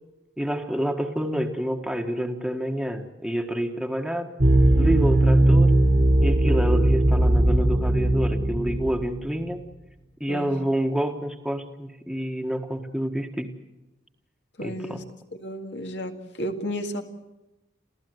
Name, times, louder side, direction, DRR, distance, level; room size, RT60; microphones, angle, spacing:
voice 1, 0.4-4.3 4.8-5.8 6.2-9.6 10.2-13.5 14.6-15.0, equal, ahead, 3 dB, 1.4 m, -28 dB
sound 1, 4.4-9.4, right 1 dB, 40° right, 1.6 m, -19 dB
voice 2, 14.6-15.0 15.3-17.0, equal, 65° left, 5 dB, 2.1 m, -33 dB
28.0 x 15.5 x 7.9 m, 0.98 s
head